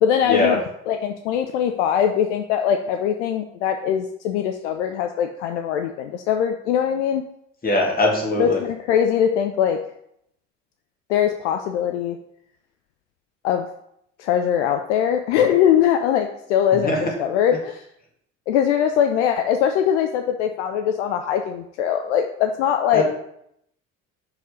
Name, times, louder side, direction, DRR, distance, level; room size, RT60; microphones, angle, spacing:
voice 1, 0.0-7.2 8.4-9.9 11.1-12.2 13.4-13.7 14.2-17.8 18.5-23.0, left 9 dB, 65° left, 6 dB, 0.6 m, -21 dB
voice 2, 7.6-8.6 16.8-17.0 22.9-23.0, left 2 dB, 25° left, -1 dB, 2.4 m, -20 dB
6.0 x 4.8 x 5.1 m, 0.75 s
figure-of-eight pair, 50°, 38 cm